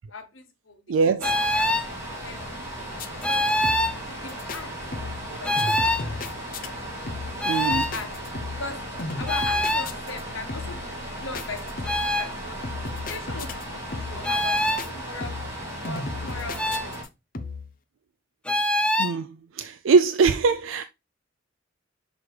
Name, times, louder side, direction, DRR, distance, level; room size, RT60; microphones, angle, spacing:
voice 1, 0.1-2.5 3.3-3.8 4.1-4.7 5.1-6.2 7.6-8.1 8.6-8.8 9.2-10.9 11.2-12.6 13.0-15.5 15.8-16.9, left 3 dB, 90° left, 1.3 m, -39 dB
voice 2, 0.9-1.2 5.3-5.4 7.5-7.9 19.0-19.3 19.6-20.9, right 4 dB, 80° right, 0.4 m, -22 dB
sound 1, 1.2-1.9 3.2-4.0 5.4-6.1 7.4-7.9 9.3-9.9 11.8-12.3 14.2-14.8 16.6-16.9 18.5-19.1, left 1 dB, 5° left, 0.4 m, -24 dB
sound 2, 1.2-17.0, right 1 dB, 15° right, 2.3 m, -36 dB
sound 3, 3.0-3.4 3.6-4.0 4.3-4.6 4.9-5.3 5.6-6.7 7.1-7.4 7.7-8.7 9.0-10.2 10.5-10.9 11.3-12.2 12.6-13.7 13.9-14.3 14.6-14.9 15.2-15.6 15.8-17.1 17.3-17.7, left 3 dB, 45° left, 0.7 m, -35 dB
6.1 x 4.9 x 3.2 m
head